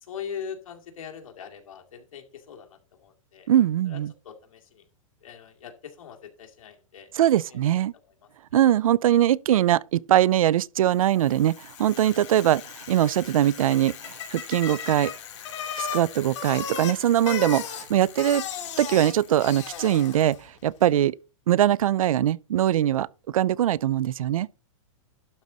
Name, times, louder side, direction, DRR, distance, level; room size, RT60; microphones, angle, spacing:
voice 1, 0.0-3.5 3.9-4.8 5.2-7.6 8.5-8.6 12.0-12.2 20.9-21.0, left 7 dB, 80° left, 2.3 m, -42 dB
voice 2, 3.5-4.1 7.1-7.9 8.5-15.1 15.8-18.4 18.8-21.2 21.5-24.5, right 12 dB, 85° right, 0.5 m, -22 dB
Bicycle, 11.0-20.5, left 8 dB, 60° left, 2.7 m, -36 dB
11.5 x 4.0 x 6.1 m
hypercardioid pair, 155°, 17 cm